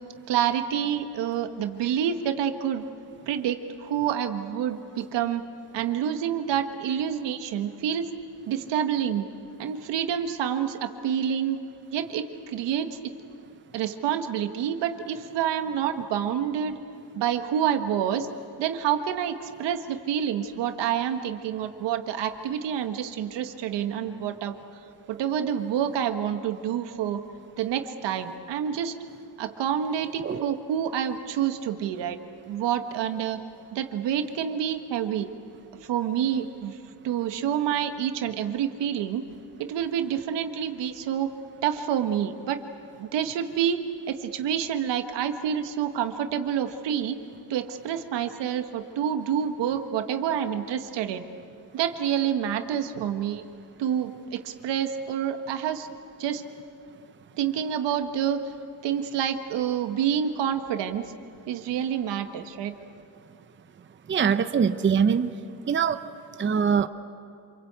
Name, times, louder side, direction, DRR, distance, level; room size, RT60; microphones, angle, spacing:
voice 1, 0.3-2.8 3.3-5.4 5.7-8.1 8.5-9.3 9.6-11.6 11.9-13.1 13.7-16.8 17.1-18.3 18.6-24.5 25.1-27.2 27.6-28.9 29.4-32.2 32.5-33.4 33.7-35.3 35.8-36.8 37.0-39.2 39.6-41.3 41.6-42.6 43.0-43.8 44.1-47.2 47.5-51.2 51.7-53.4 53.8-55.9 56.2-56.4 57.4-58.4 58.8-61.1 61.5-62.7, right 9 dB, 85° right, 7 dB, 1.6 m, -28 dB
voice 2, 30.2-30.5 64.1-65.3 65.7-66.0 66.4-66.9, right 7 dB, 30° right, 10 dB, 0.8 m, -23 dB
27.5 x 22.5 x 8.1 m, 2.5 s
cardioid pair, 110°, 42 cm